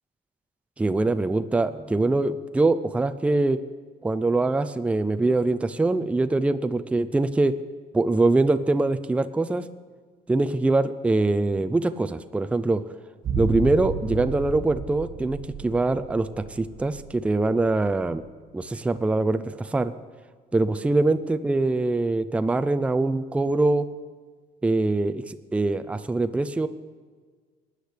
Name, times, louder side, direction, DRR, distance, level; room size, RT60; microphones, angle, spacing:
voice 1, 0.8-3.6 4.0-7.5 7.9-9.6 10.3-12.8 13.4-18.2 18.5-19.9 20.5-23.9 24.6-26.7, right 2 dB, 5° right, 10 dB, 0.4 m, -23 dB
sound 1, 13.2-17.5 17.7-17.8, right 3 dB, 50° right, 1.6 m, -32 dB
18.5 x 9.7 x 3.3 m, 1.5 s
cardioid pair, 110°, 17 cm